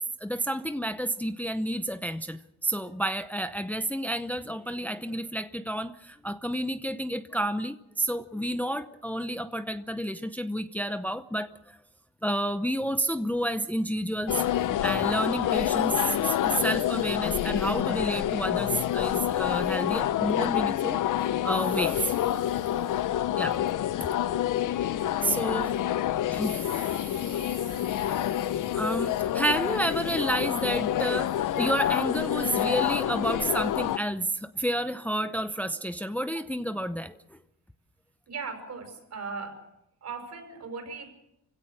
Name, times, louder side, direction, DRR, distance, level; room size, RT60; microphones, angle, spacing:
voice 1, 0.2-11.8 12.2-14.4 14.8-22.4 22.7-22.9 23.3-23.6 24.0-24.1 24.6-24.7 25.2-25.8 26.3-27.4 28.8-37.4, right 1 dB, 5° left, 10 dB, 0.7 m, -30 dB
sound 1, 14.3-34.0, left 12 dB, 90° left, 0.8 m, -27 dB
voice 2, 38.3-39.7 40.0-41.1, right 4 dB, 60° right, 6 dB, 5.9 m, -38 dB
26.5 x 16.5 x 6.5 m, 0.82 s
cardioid pair, 115°, 30 cm